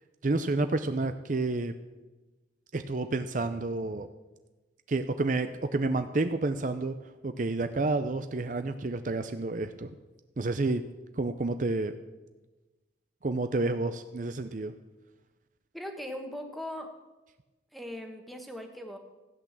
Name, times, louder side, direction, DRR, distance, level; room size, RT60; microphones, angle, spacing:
voice 1, 0.2-1.7 2.7-4.1 4.9-6.9 7.2-9.9 10.4-10.8 11.2-11.9 13.2-14.7, right 2 dB, 45° right, 9 dB, 0.6 m, -29 dB
voice 2, 15.7-16.9 17.7-19.0, left 1 dB, ahead, 4 dB, 1.4 m, -39 dB
15.0 x 8.5 x 7.4 m, 1.2 s
head